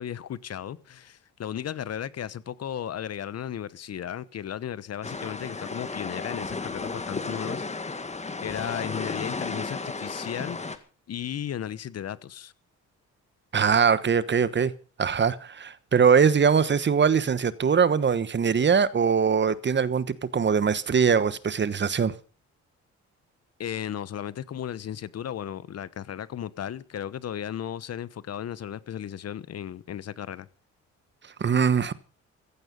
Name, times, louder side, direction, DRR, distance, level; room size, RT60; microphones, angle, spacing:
voice 1, 0.0-7.6 8.4-10.8 11.1-12.5 23.6-30.5, left 10 dB, 55° left, 1.1 m, -35 dB
sound 1, 5.0-10.8, left 3 dB, 20° left, 1.9 m, -34 dB
voice 2, 13.5-14.7 15.0-22.1 31.4-31.9, right 6 dB, 35° right, 1.3 m, -22 dB
15.5 x 14.5 x 5.4 m
cardioid pair, 90°, 30 cm